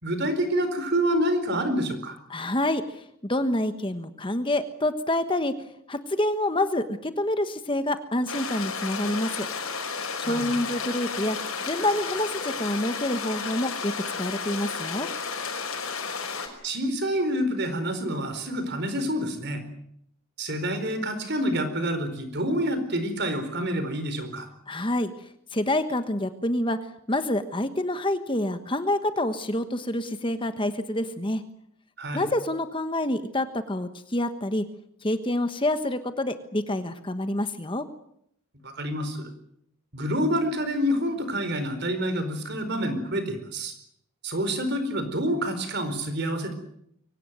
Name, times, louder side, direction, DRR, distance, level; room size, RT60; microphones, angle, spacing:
voice 1, 0.0-2.2 10.2-10.5 16.6-19.6 20.4-24.5 32.0-32.3 38.6-39.3 39.9-43.7 44.2-46.5, equal, 50° right, 9 dB, 4.5 m, -27 dB
voice 2, 2.3-5.5 5.9-9.5 10.2-11.4 11.6-15.1 24.7-25.1 25.5-26.8 27.1-31.4 32.1-34.6 35.0-37.8, left 1 dB, 25° left, 9 dB, 1.3 m, -27 dB
sound 1, 8.3-16.5, left 5 dB, 75° left, 5.8 m, -32 dB
24.0 x 18.0 x 9.4 m, 0.73 s
head